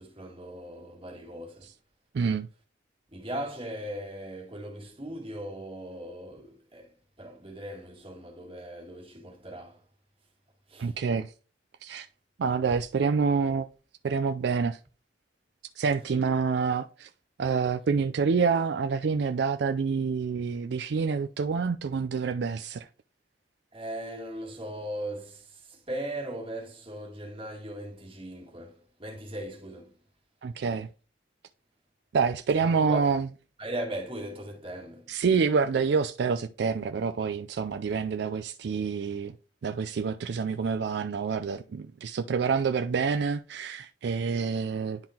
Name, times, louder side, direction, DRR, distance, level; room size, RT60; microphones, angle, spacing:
voice 1, 0.0-1.7 3.1-9.8 10.7-11.0 23.7-30.0 32.6-33.1 33.6-35.1, right 1 dB, 30° right, 1.9 m, -38 dB
voice 2, 2.1-2.5 10.8-11.3 11.8-12.1 12.4-13.7 14.0-14.8 15.8-17.1 17.4-22.9 30.4-30.9 32.1-33.3 35.1-39.3 39.6-45.0, right 5 dB, 70° right, 0.4 m, -27 dB
10.5 x 3.8 x 2.8 m
head